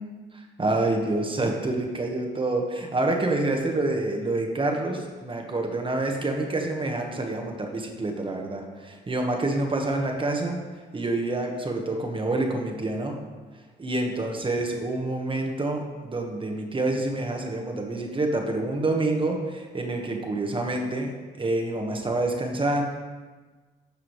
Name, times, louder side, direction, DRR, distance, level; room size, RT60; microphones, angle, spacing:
voice 1, 0.3-10.6 10.9-13.2 13.8-22.9, right 2 dB, 25° right, 2 dB, 1.3 m, -27 dB
13.5 x 4.9 x 3.2 m, 1.4 s
cardioid pair, 90°, 20 cm